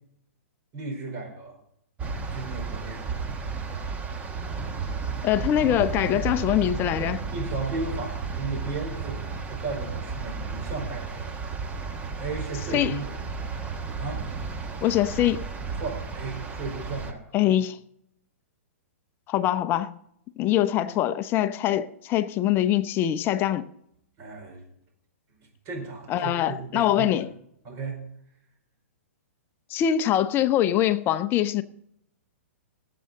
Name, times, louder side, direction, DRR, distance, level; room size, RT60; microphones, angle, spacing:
voice 1, 0.7-1.6 2.3-3.1 7.3-11.3 12.2-13.2 14.0-14.3 15.8-17.5 24.2-24.6 25.6-27.1 27.6-28.0, right 3 dB, 35° right, 4.8 m, -35 dB
sound 1, 2.0-17.1, right 5 dB, 15° right, 1.3 m, -33 dB
voice 2, 5.2-7.2 12.7-13.0 14.8-15.5 17.3-17.8 19.3-20.0 20.4-23.7 26.1-27.3 29.7-31.6, left 11 dB, 30° left, 0.6 m, -23 dB
18.5 x 7.7 x 4.0 m
hypercardioid pair, 120°, 8 cm